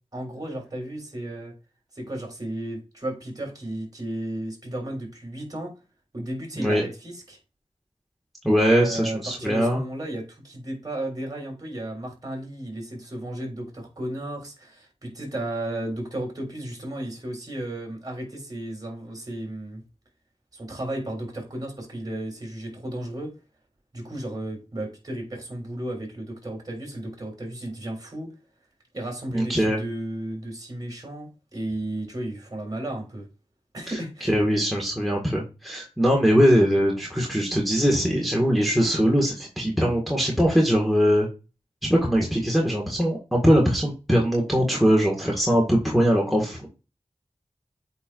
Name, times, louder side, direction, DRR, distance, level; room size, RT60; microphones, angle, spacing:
voice 1, 0.1-1.5 1.9-5.7 6.1-7.4 8.7-19.8 20.5-23.3 23.9-28.3 28.9-33.3 33.7-34.3, right 1 dB, 35° right, 3.4 m, -34 dB
voice 2, 8.4-9.8 29.3-29.8 34.2-41.3 41.9-46.7, equal, ahead, 1.7 m, -21 dB
8.3 x 4.5 x 2.5 m
wide cardioid pair, 70°, 12 cm